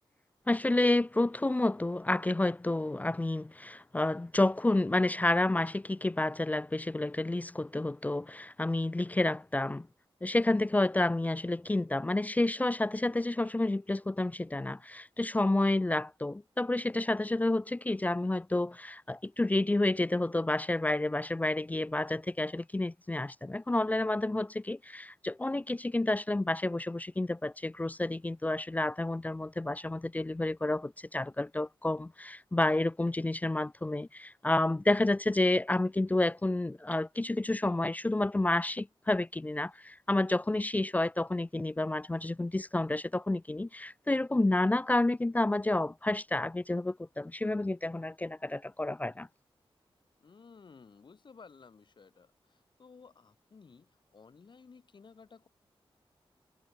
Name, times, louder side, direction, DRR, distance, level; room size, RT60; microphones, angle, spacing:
voice 1, 0.5-9.9 10.2-49.3, left 2 dB, 15° left, 0.5 m, -30 dB
voice 2, 50.2-55.5, left 5 dB, 55° left, 7.7 m, -56 dB
wide cardioid pair, 150°, 10 cm